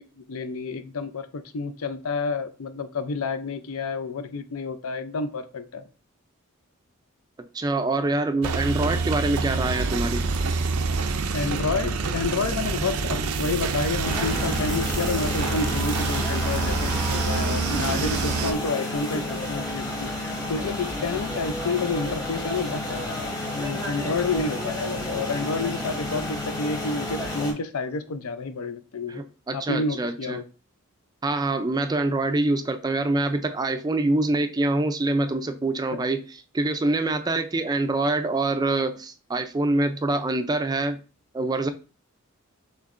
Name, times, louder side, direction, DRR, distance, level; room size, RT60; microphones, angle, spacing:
voice 1, 0.2-5.8 11.3-29.2 29.5-30.4, left 4 dB, 80° left, 0.5 m, -29 dB
voice 2, 7.4-10.2 29.1-30.4 31.2-36.2 36.5-41.0 41.3-41.7, right 2 dB, 20° right, 0.4 m, -25 dB
sound 1, 8.4-18.5, right 4 dB, 90° right, 0.5 m, -27 dB
sound 2, 14.0-27.5, left 1 dB, 15° left, 1.0 m, -31 dB
6.3 x 3.1 x 2.5 m
head